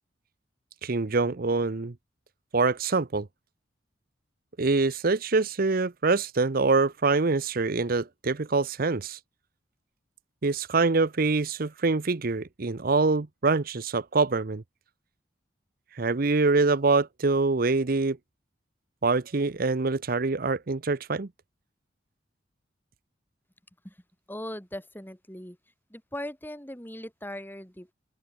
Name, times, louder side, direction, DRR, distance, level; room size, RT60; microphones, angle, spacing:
voice 1, 0.8-1.9 2.5-3.3 4.6-9.2 10.4-14.6 16.0-18.2 19.0-21.3, right 3 dB, 50° right, 0.8 m, -25 dB
voice 2, 24.3-25.6 25.9-27.9, left 1 dB, 10° left, 7.8 m, -39 dB
open air
head